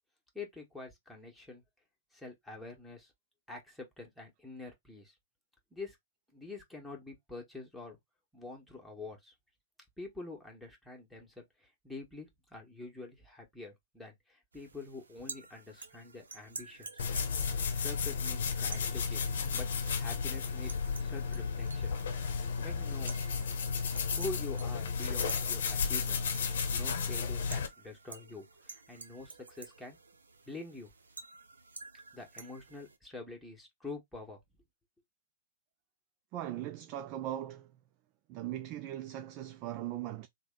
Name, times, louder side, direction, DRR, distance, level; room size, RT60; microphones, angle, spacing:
voice 1, 0.3-1.6 2.1-3.1 3.5-5.1 5.7-6.0 6.3-8.0 8.3-9.3 10.0-17.0 17.5-19.7 20.0-22.0 22.6-23.2 24.1-26.3 26.7-30.0 30.4-30.9 32.1-34.4, left 3 dB, ahead, 1.4 m, -46 dB
sound 1, 14.5-33.0, right 4 dB, 80° right, 0.6 m, -51 dB
sound 2, 17.0-27.7, left 5 dB, 65° left, 0.8 m, -33 dB
voice 2, 36.3-37.7 38.3-40.3, right 12 dB, 40° right, 0.4 m, -39 dB
3.4 x 2.2 x 3.7 m
figure-of-eight pair, 110°, 0 cm